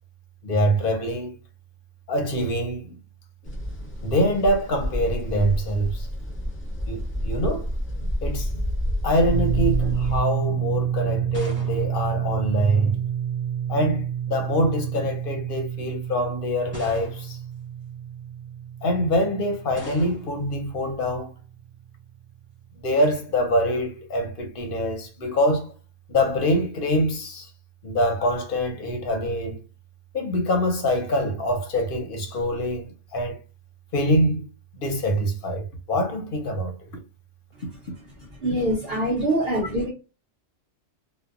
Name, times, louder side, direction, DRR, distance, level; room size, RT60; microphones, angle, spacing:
voice 1, 0.4-1.4 2.1-3.0 4.0-6.1 6.9-7.7 8.0-8.6 9.0-13.0 13.7-17.4 18.8-21.3 22.8-25.7 26.1-27.5 27.8-29.6 30.1-33.4 33.9-34.5 34.8-36.7, equal, 55° left, 0.7 m, -24 dB
sound 1, 3.5-10.2, equal, 15° left, 0.5 m, -29 dB
sound 2, 9.3-21.0, right 9 dB, 90° left, 1.0 m, -29 dB
sound 3, 11.2-13.1 14.1-14.6 15.4-15.5 16.7-17.5 19.7-20.5, left 2 dB, 10° right, 0.9 m, -43 dB
voice 2, 38.4-39.9, right 1 dB, 55° right, 1.0 m, -24 dB
2.6 x 2.1 x 2.4 m
omnidirectional pair, 1.3 m